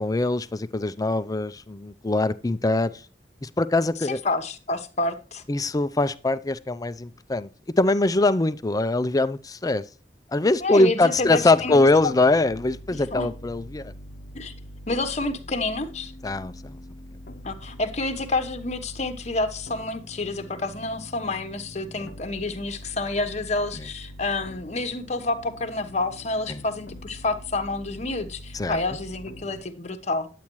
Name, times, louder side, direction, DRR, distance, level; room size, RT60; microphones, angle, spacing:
voice 1, 0.0-3.0 3.4-4.2 5.5-7.5 7.8-9.8 10.3-13.9 16.2-16.8 22.0-22.1 26.5-26.6 28.5-28.8, left 2 dB, 20° left, 0.5 m, -22 dB
voice 2, 4.2-5.4 10.6-12.1 12.9-13.3 14.3-14.5 14.9-16.1 17.4-30.3, left 2 dB, 40° left, 1.0 m, -29 dB
sound 1, 11.1-29.6, left 1 dB, 60° left, 0.7 m, -43 dB
10.5 x 8.4 x 3.1 m
head